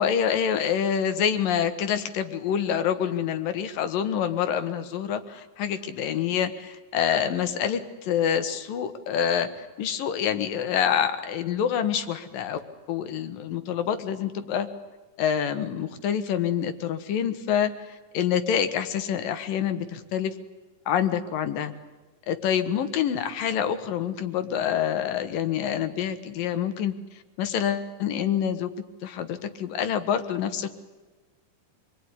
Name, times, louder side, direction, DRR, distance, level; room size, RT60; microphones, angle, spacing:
voice 1, 0.0-12.6 12.9-14.7 15.2-20.4 20.9-21.7 22.3-26.9 27.4-28.7 29.0-30.7, left 8 dB, 75° left, 10 dB, 3.1 m, -26 dB
27.0 x 21.5 x 9.9 m, 1.2 s
omnidirectional pair, 4.1 m